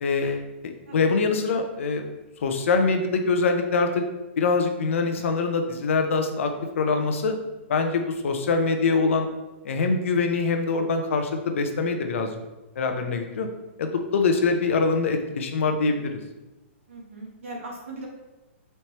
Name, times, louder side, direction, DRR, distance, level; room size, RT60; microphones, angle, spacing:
voice 1, 0.0-2.0 2.4-4.0 4.4-7.4 7.7-9.3 9.6-12.3 12.8-13.5 13.8-16.2, left 4 dB, 75° left, 5 dB, 0.6 m, -24 dB
voice 2, 16.9-18.1, right 2 dB, 90° right, -1 dB, 1.3 m, -40 dB
4.4 x 3.2 x 2.9 m, 1.0 s
hypercardioid pair, 160°, 7 cm